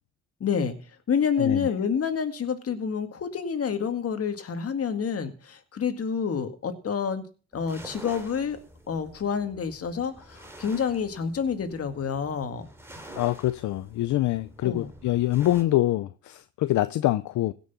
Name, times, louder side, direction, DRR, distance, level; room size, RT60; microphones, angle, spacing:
voice 1, 0.4-0.8 1.1-7.2 7.5-8.6 8.9-12.7 14.6-14.9, left 6 dB, 50° left, 2.1 m, -28 dB
sound 1, 7.5-15.6, right 1 dB, 10° right, 2.9 m, -47 dB
voice 2, 13.1-17.5, left 15 dB, 70° left, 0.6 m, -25 dB
16.5 x 6.3 x 7.0 m
cardioid pair, 90°, 30 cm